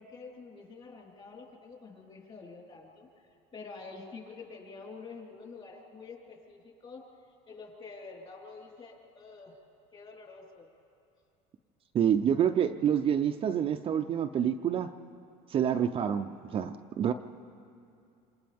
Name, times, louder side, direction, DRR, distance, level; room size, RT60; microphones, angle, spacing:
voice 1, 0.0-3.1 3.5-7.0 7.5-9.5 9.9-10.7, left 4 dB, 30° left, -2 dB, 4.1 m, -47 dB
voice 2, 11.9-14.9 15.5-17.1, right 9 dB, 35° right, 5 dB, 0.6 m, -27 dB
27.5 x 26.5 x 3.6 m, 2.6 s
cardioid pair, 130°, 16 cm